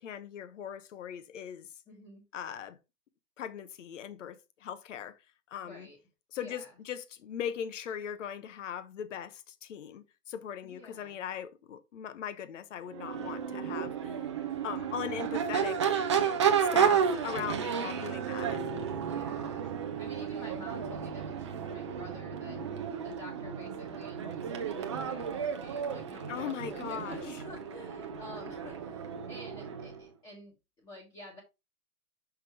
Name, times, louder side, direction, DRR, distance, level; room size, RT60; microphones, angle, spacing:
voice 1, 0.0-1.7 2.3-2.8 3.4-5.2 5.5-5.9 6.3-14.2 14.6-16.2 16.6-18.6 26.3-27.4, left 9 dB, 50° left, 1.0 m, -39 dB
voice 2, 1.9-2.2 5.6-6.0 6.4-6.7 10.6-11.2 16.7-18.3 19.0-19.7 20.0-22.8 23.0-31.4, left 1 dB, 10° left, 1.3 m, -49 dB
sound 1, 12.8-22.9, right 9 dB, 40° right, 0.8 m, -47 dB
Crowd / Race car auto racing / Accelerating revving vroom, 12.9-30.0, right 7 dB, 20° right, 0.4 m, -32 dB
6.0 x 5.1 x 4.6 m
hypercardioid pair, 150°, 46 cm